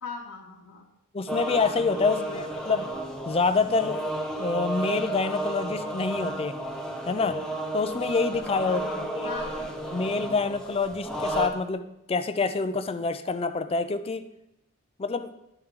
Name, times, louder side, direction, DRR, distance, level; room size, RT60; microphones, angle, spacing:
voice 1, 0.0-0.9 2.0-2.5 8.6-9.7, left 4 dB, 90° left, -5 dB, 0.9 m, -39 dB
voice 2, 1.1-2.9 3.3-4.0 4.4-6.5 7.1-7.4 7.7-8.8 9.2-9.3 9.9-14.2 15.0-15.3, left 4 dB, 30° left, 10 dB, 0.4 m, -27 dB
sound 1, 1.3-11.5, right 1 dB, 5° left, 0.8 m, -32 dB
11.0 x 4.5 x 3.7 m, 0.86 s
head